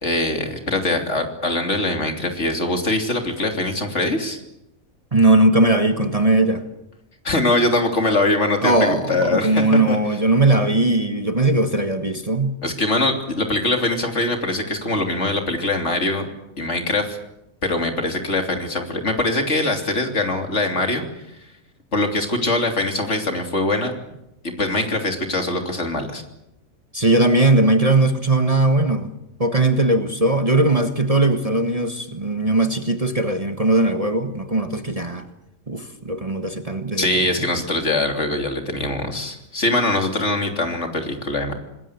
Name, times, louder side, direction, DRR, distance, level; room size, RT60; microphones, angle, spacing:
voice 1, 0.0-4.4 7.2-10.0 12.6-16.3 16.6-17.2 17.6-21.0 21.9-23.9 24.4-26.2 37.0-41.5, left 2 dB, 55° left, 3.5 m, -22 dB
voice 2, 5.1-6.6 8.6-12.6 26.9-29.1 29.4-35.3 35.7-37.1 37.4-37.5, right 2 dB, 25° right, 1.4 m, -19 dB
26.0 x 20.5 x 8.2 m
omnidirectional pair, 1.5 m